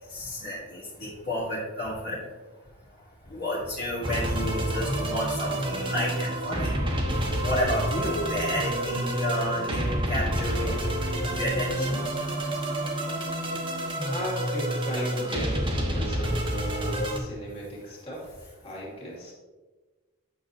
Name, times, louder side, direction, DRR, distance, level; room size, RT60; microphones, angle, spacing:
voice 1, 0.1-2.2 3.3-6.7 7.4-10.8 11.3-12.0, equal, 50° left, -8 dB, 1.8 m, -31 dB
sound 1, 4.0-17.2, right 1 dB, 25° right, 1.2 m, -28 dB
voice 2, 14.1-18.3 18.6-19.3, equal, 30° left, -5 dB, 2.6 m, -36 dB
9.2 x 6.2 x 2.9 m, 1.2 s
head